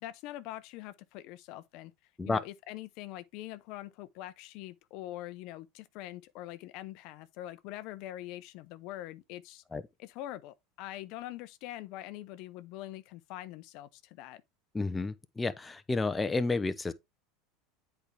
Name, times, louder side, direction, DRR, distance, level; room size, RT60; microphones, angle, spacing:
voice 1, 0.0-1.9 2.2-9.6 10.0-14.4, left 14 dB, 60° left, 0.6 m, -43 dB
voice 2, 14.7-16.9, left 3 dB, 15° left, 0.7 m, -31 dB
8.1 x 4.5 x 3.3 m
supercardioid pair, 105°, 0 cm